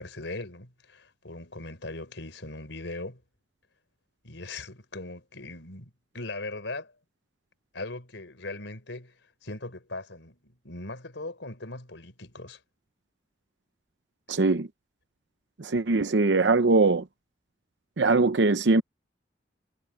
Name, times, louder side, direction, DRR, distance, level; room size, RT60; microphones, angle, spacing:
voice 1, 0.0-3.2 4.2-6.9 7.7-9.2 9.4-12.6, left 2 dB, 90° left, 4.4 m, -39 dB
voice 2, 14.3-14.7 15.6-17.1 18.0-18.8, right 3 dB, 75° right, 0.7 m, -21 dB
head